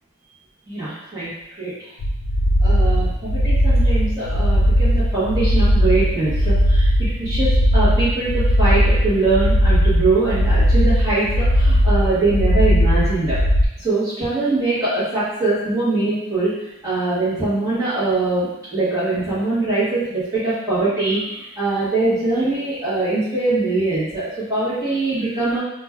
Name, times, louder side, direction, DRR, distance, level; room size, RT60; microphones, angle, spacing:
voice 1, 0.7-1.3 1.6-1.7 2.6-13.4 13.8-16.6 16.8-25.6, right 2 dB, 15° right, -14 dB, 1.0 m, -22 dB
sound 1, 2.0-13.7, equal, 50° left, 0.3 m, -17 dB
2.5 x 2.2 x 3.3 m, 0.89 s
head